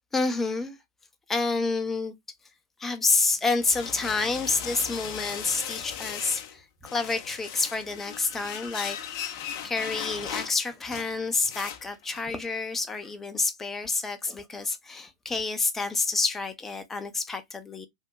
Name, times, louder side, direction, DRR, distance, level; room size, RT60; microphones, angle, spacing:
voice 1, 0.1-0.8 1.3-2.1 2.8-9.3 9.6-17.9, left 3 dB, 15° left, 0.7 m, -28 dB
sound 1, 3.3-6.6 6.8-12.3, left 9 dB, 55° left, 0.7 m, -37 dB
3.5 x 2.6 x 2.2 m
hypercardioid pair, 100°, 2 cm